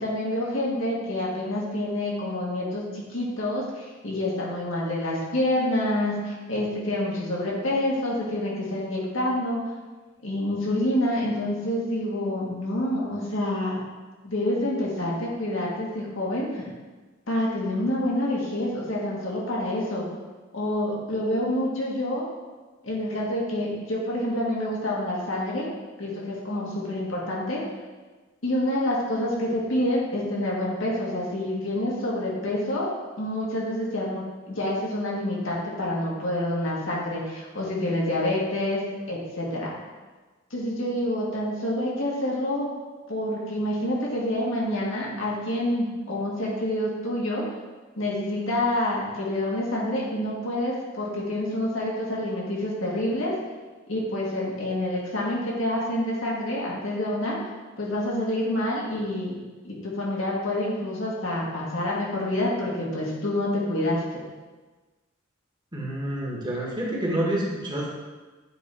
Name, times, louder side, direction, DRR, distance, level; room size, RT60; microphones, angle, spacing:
voice 1, 0.0-9.6 10.2-13.8 14.2-16.6 17.3-20.1 20.5-22.2 22.8-25.6 26.0-27.6 28.4-32.9 33.2-38.8 39.1-39.7 40.5-42.7 43.1-47.4 48.0-53.3 53.9-57.4 57.8-59.4 59.6-64.2, left 1 dB, 75° left, -4 dB, 1.9 m, -27 dB
voice 2, 65.7-67.9, right 1 dB, 20° right, -3 dB, 1.4 m, -28 dB
8.9 x 3.9 x 4.4 m, 1.3 s
head